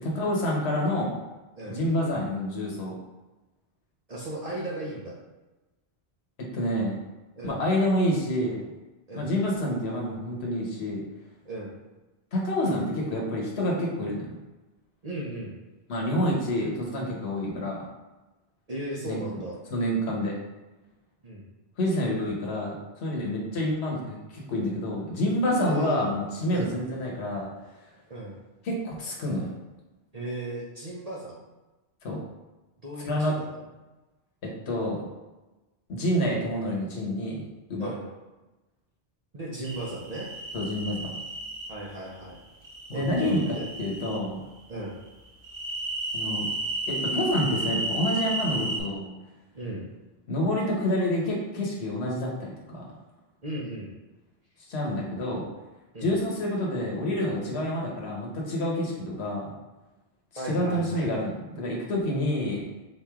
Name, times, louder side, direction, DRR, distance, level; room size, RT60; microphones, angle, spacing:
voice 1, 0.0-1.1 1.7-2.9 6.4-7.0 7.4-8.6 9.1-11.0 12.3-14.4 15.9-17.8 19.0-19.2 19.7-20.3 21.8-22.7 23.0-27.5 28.6-29.5 32.0-32.2 33.0-33.3 34.4-35.1 35.9-37.9 40.5-41.0 42.9-43.4 43.8-44.4 46.1-46.5 46.9-49.1 50.3-52.9 54.7-55.4 56.0-59.5 60.3-62.7, left 1 dB, 75° left, -2 dB, 1.3 m, -28 dB
voice 2, 4.1-5.2 7.4-7.6 9.1-9.3 11.4-11.8 15.0-15.6 18.7-19.6 21.2-21.5 25.6-26.1 26.5-26.8 28.1-28.4 30.1-31.4 32.8-33.6 37.8-38.1 39.3-40.3 41.7-42.4 42.9-43.7 44.7-45.0 49.5-49.9 53.4-53.9 55.9-56.2 60.4-61.1, right 1 dB, 40° right, -4 dB, 0.8 m, -36 dB
sound 1, 39.6-41.7 42.6-44.2 45.4-48.8, right 2 dB, 60° right, 1.1 m, -33 dB
4.3 x 3.1 x 3.5 m, 1.1 s
omnidirectional pair, 1.1 m